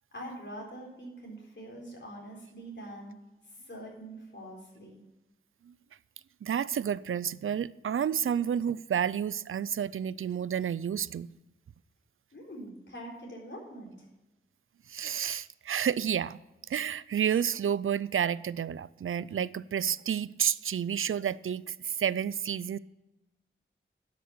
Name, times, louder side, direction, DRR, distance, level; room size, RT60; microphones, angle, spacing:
voice 1, 0.1-3.2 3.4-5.0 12.3-14.1, right 1 dB, 60° left, 4.1 m, -44 dB
voice 2, 6.4-11.3 14.9-16.4 16.7-22.8, right 8 dB, 90° right, 0.4 m, -30 dB
12.0 x 6.5 x 6.8 m
wide cardioid pair, 65°, 21 cm